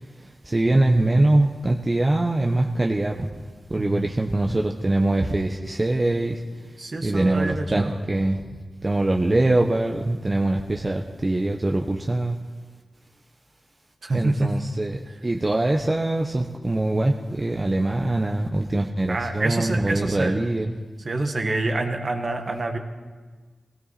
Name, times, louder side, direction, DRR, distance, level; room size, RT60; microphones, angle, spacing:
voice 1, 0.4-3.3 3.7-6.4 7.0-8.4 8.8-12.4 14.1-20.7, right 2 dB, 25° right, 1 dB, 1.0 m, -23 dB
voice 2, 6.8-8.0 14.0-14.6 15.1-15.2 19.1-20.4 21.0-22.8, right 2 dB, 45° right, 5 dB, 1.6 m, -27 dB
19.0 x 17.0 x 4.3 m, 1.4 s
cardioid pair, 75°, 0 cm